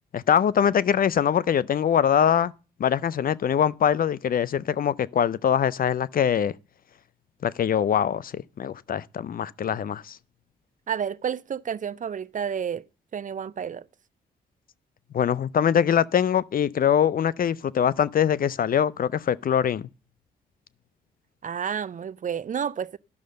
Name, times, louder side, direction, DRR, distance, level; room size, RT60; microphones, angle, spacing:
voice 1, 0.1-2.5 2.8-6.5 7.4-10.2 15.1-19.9, left 8 dB, 50° left, 0.5 m, -23 dB
voice 2, 10.9-12.8 13.1-13.8 21.4-23.0, right 7 dB, 45° right, 0.5 m, -30 dB
11.0 x 6.3 x 6.7 m
supercardioid pair, 55°, 19 cm